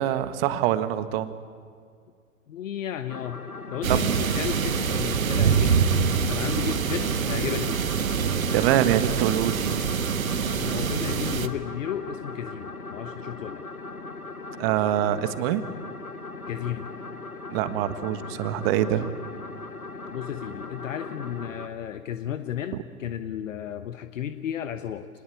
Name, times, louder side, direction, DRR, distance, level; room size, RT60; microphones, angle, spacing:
voice 1, 0.0-1.3 3.9-4.1 8.5-9.8 14.6-15.6 17.5-19.1, right 12 dB, 45° right, 11 dB, 1.7 m, -24 dB
voice 2, 2.5-3.4 3.7-5.8 6.3-7.9 10.5-13.6 16.5-16.9 20.1-25.1, left 10 dB, 65° left, 10 dB, 1.2 m, -33 dB
sound 1, 3.1-21.7, left 3 dB, 90° left, 2.0 m, -39 dB
sound 2, 3.8-11.5, right 6 dB, 75° right, 1.4 m, -25 dB
26.0 x 20.0 x 8.6 m, 2.2 s
figure-of-eight pair, 100°, 42 cm